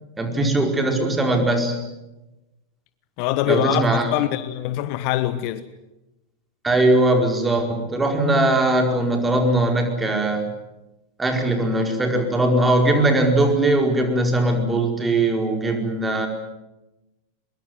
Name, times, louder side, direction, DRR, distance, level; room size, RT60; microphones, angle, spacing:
voice 1, 0.2-1.8 3.5-4.1 6.6-10.5 11.2-16.3, right 2 dB, 10° right, 4.7 m, -20 dB
voice 2, 3.2-5.7, left 14 dB, 45° left, 1.2 m, -24 dB
23.0 x 22.5 x 9.4 m
figure-of-eight pair, 90°, 0 cm